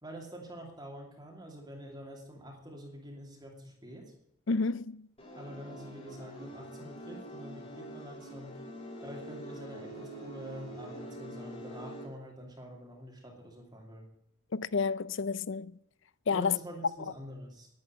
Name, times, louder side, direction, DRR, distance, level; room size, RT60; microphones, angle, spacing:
voice 1, 0.0-4.1 5.4-8.6 9.0-14.1 16.3-17.7, equal, 20° right, 2.8 m, -46 dB
voice 2, 4.5-5.1 14.5-15.8 16.3-16.6, left 5 dB, 60° left, 0.5 m, -30 dB
sound 1, 5.2-12.0, right 1 dB, 30° left, 4.3 m, -45 dB
11.0 x 10.5 x 8.9 m
head